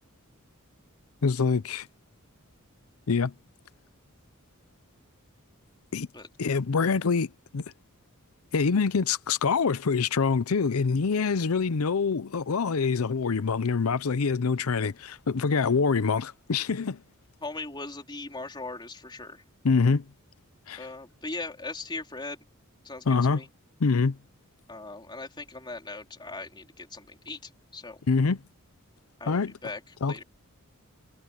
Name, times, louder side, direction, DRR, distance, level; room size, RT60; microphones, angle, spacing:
voice 1, 1.2-1.9 3.1-3.3 5.9-6.1 6.4-7.6 8.5-17.0 19.6-20.0 20.7-20.9 23.1-23.4 23.8-24.2 28.1-28.4 29.3-29.5 30.0-30.2, left 5 dB, 75° left, 0.6 m, -25 dB
voice 2, 17.4-19.4 20.8-22.4 22.8-23.5 24.7-27.4 27.7-28.0 29.2-29.8 30.1-30.2, left 3 dB, 20° left, 3.3 m, -39 dB
head